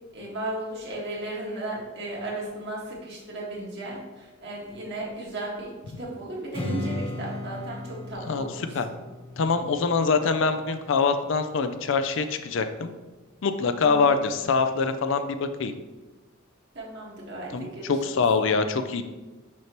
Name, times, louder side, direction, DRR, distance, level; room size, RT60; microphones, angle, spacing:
voice 1, 0.1-5.7 6.0-8.9 13.8-14.2 16.7-18.2, right 1 dB, 55° right, -3 dB, 1.7 m, -35 dB
Strum, 6.5-11.8, left 1 dB, 25° left, 0.9 m, -37 dB
voice 2, 8.3-8.9 9.4-12.9 13.4-15.7 17.5-19.0, left 4 dB, 65° left, 8 dB, 0.4 m, -24 dB
6.1 x 5.8 x 3.0 m, 1.2 s
head